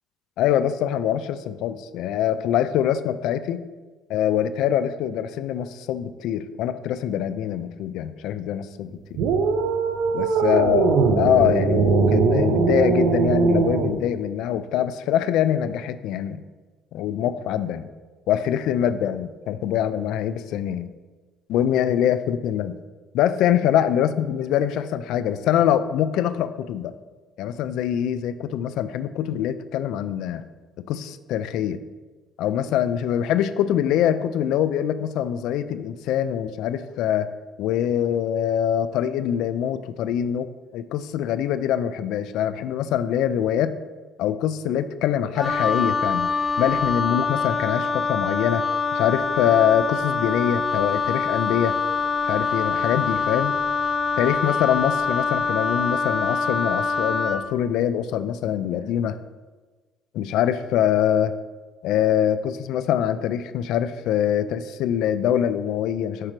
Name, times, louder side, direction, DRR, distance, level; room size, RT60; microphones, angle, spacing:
voice 1, 0.4-3.6 4.1-9.2 10.1-10.9 11.2-16.4 16.9-17.9 18.3-20.9 21.5-22.7 23.1-26.9 27.4-30.5 30.9-31.8 32.4-37.3 37.6-43.8 44.2-46.3 46.6-48.7 48.9-51.8 52.3-53.5 54.2-59.2 60.1-61.3 61.8-66.3, left 10 dB, 75° left, 13 dB, 0.3 m, -24 dB
sound 1, 9.2-14.0, right 5 dB, 85° right, 0.5 m, -20 dB
Wind instrument woodwind instrument, 45.4-57.4, left 5 dB, 20° left, 0.6 m, -24 dB
7.4 x 3.2 x 5.0 m, 1.3 s
cardioid pair, 130°, 0 cm